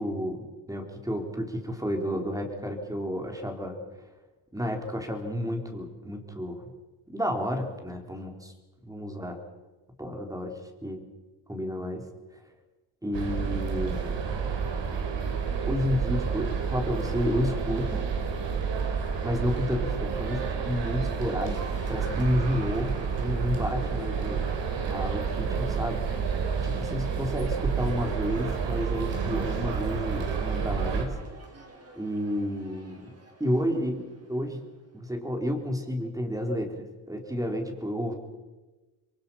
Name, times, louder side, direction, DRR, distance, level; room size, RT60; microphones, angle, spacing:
voice 1, 0.0-3.8 4.5-6.7 7.1-8.5 8.8-9.4 10.0-11.0 11.5-12.0 13.0-14.2 15.7-18.1 19.2-24.4 24.9-26.0 26.6-31.2 32.0-33.1 33.4-34.6 34.9-38.1, equal, 5° right, 3 dB, 4.2 m, -31 dB
sound 1, 13.1-31.0, right 6 dB, 60° right, 4.6 m, -30 dB
Cheering / Applause, 21.5-34.9, right 2 dB, 30° right, 5.0 m, -48 dB
28.5 x 23.0 x 5.8 m, 1.2 s
cardioid pair, 115°, 48 cm